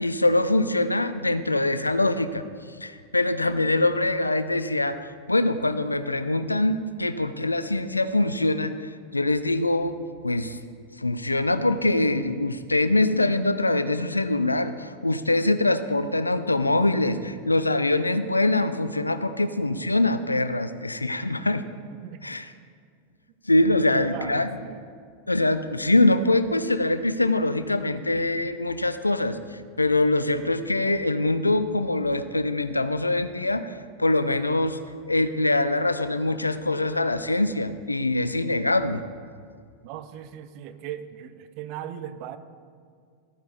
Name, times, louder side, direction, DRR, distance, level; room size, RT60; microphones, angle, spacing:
voice 1, 0.0-2.4 2.8-10.0 10.2-10.6 11.0-21.6 22.2-22.4 23.4-24.5 25.3-34.8 35.1-39.0, left 2 dB, 85° left, 12 dB, 0.5 m, -24 dB
voice 2, 24.0-24.8 39.8-42.4, right 10 dB, 45° right, 11 dB, 0.7 m, -38 dB
13.5 x 9.5 x 4.2 m, 2.1 s
figure-of-eight pair, 90°, 0 cm